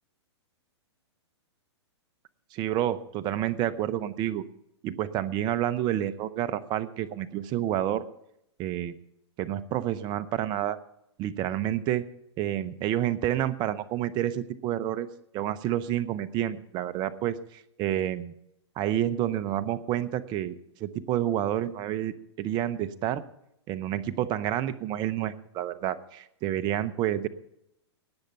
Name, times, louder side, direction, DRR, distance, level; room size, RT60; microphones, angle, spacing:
voice 1, 2.5-4.4 4.8-8.0 8.6-9.0 9.4-10.8 11.2-12.1 12.4-15.1 15.3-18.3 18.8-23.2 23.7-27.3, right 12 dB, 30° right, 13 dB, 0.8 m, -29 dB
18.5 x 6.6 x 5.7 m, 0.79 s
hypercardioid pair, 125°, 15 cm